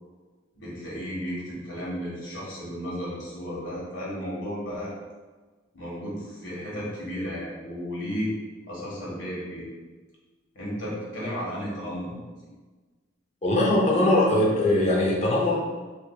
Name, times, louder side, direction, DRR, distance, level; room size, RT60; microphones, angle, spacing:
voice 1, 0.5-4.9 5.7-8.3 8.7-9.7 10.5-12.1, equal, 75° left, -6 dB, 1.4 m, -33 dB
voice 2, 13.4-15.5, left 1 dB, 35° left, -3 dB, 0.6 m, -21 dB
4.5 x 2.6 x 2.3 m, 1.3 s
head